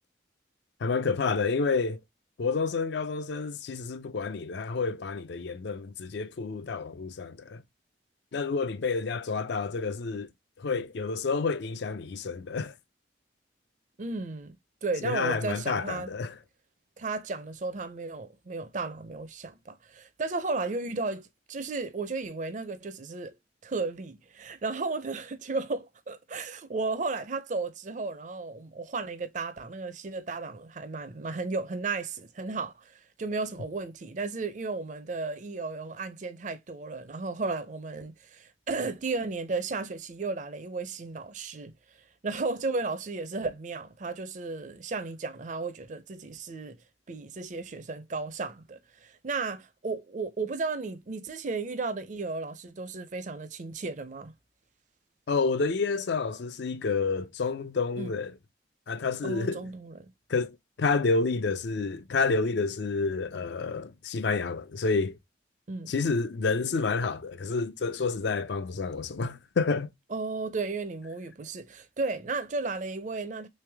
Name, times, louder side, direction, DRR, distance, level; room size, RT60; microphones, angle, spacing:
voice 1, 0.8-2.0 2.4-7.6 8.3-10.3 10.6-12.7 15.0-16.3 55.3-58.3 58.9-59.7 60.3-65.2 65.9-69.9, left 4 dB, 65° left, 0.4 m, -29 dB
voice 2, 14.0-14.6 14.8-16.1 17.0-23.4 23.6-41.7 42.2-46.8 47.1-54.3 58.0-58.1 59.2-60.1 65.7-65.9 70.1-73.5, right 3 dB, 40° right, 0.5 m, -34 dB
3.3 x 3.3 x 3.3 m
head